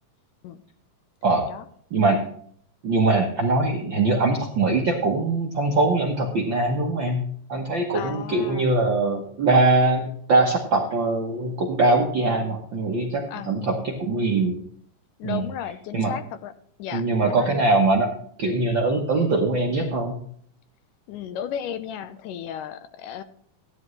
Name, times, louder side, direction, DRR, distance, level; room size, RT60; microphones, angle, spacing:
voice 1, 1.2-1.7 7.9-8.7 13.3-13.5 15.2-16.5 16.8-17.6 21.1-23.2, left 9 dB, 85° left, 11 dB, 2.3 m, -34 dB
voice 2, 1.9-2.2 2.8-7.2 7.5-14.6 15.2-15.4 15.9-16.1 16.9-18.1 18.4-20.2, right 2 dB, 65° right, 1 dB, 1.1 m, -22 dB
15.0 x 10.5 x 3.1 m, 0.63 s
omnidirectional pair, 3.8 m